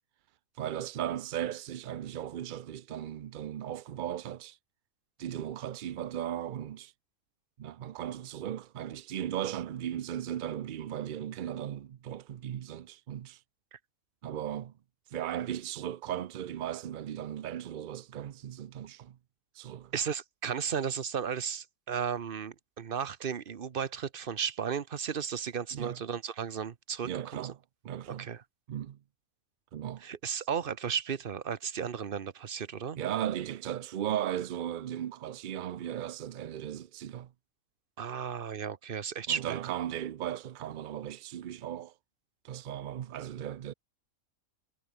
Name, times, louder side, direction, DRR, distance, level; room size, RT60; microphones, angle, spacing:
voice 1, 0.6-4.6 5.2-6.9 7.6-13.4 14.2-14.7 15.1-19.2 19.5-19.9 25.7-26.0 27.0-28.3 28.7-29.0 29.7-30.0 33.0-37.3 39.3-41.9 42.4-43.7, right 10 dB, 75° right, 0.4 m, -37 dB
voice 2, 19.9-27.5 28.1-28.4 30.0-33.0 38.0-39.6, right 7 dB, 45° right, 1.0 m, -34 dB
omnidirectional pair, 1.5 m